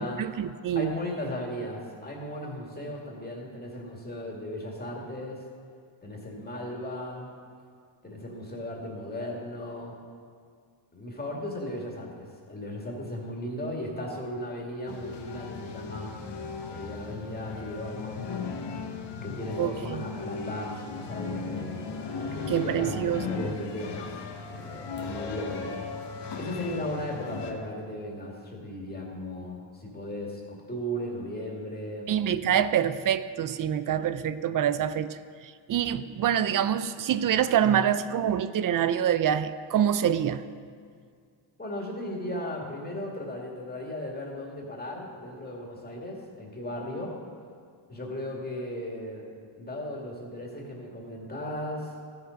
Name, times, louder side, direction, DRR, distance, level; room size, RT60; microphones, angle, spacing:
voice 1, 0.0-0.9 19.6-20.0 22.5-23.5 32.1-35.2 35.4-40.4, right 9 dB, 45° right, 14 dB, 0.4 m, -26 dB
voice 2, 0.8-5.4 6.0-7.3 8.0-10.0 10.9-16.1 16.7-18.4 19.2-21.8 22.2-24.1 24.5-26.1 26.4-32.1 41.6-47.2 47.9-49.2 49.6-51.9, left 1 dB, 20° left, -1 dB, 2.2 m, -36 dB
sound 1, 14.9-27.5, left 5 dB, 60° left, 1.3 m, -37 dB
14.0 x 6.9 x 5.2 m, 2.1 s
cardioid pair, 110°, 48 cm